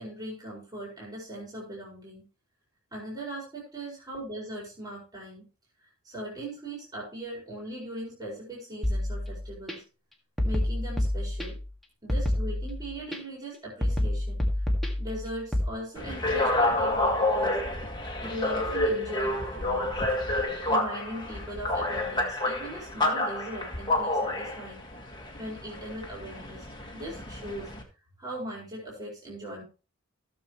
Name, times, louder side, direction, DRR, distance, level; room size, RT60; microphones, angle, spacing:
voice 1, 0.0-2.3 2.9-5.5 5.8-9.8 10.4-11.6 12.0-14.7 15.0-17.6 18.2-20.0 20.7-24.8 25.3-26.7 26.9-29.6, right 1 dB, 20° right, -5 dB, 4.4 m, -39 dB
sound 1, 8.8-9.7 10.4-11.7 12.1-13.2 13.8-15.7, left 1 dB, ahead, 1.9 m, -28 dB
sound 2, 16.0-27.8, left 1 dB, 20° left, 1.9 m, -29 dB
16.0 x 7.2 x 3.1 m, 0.32 s
head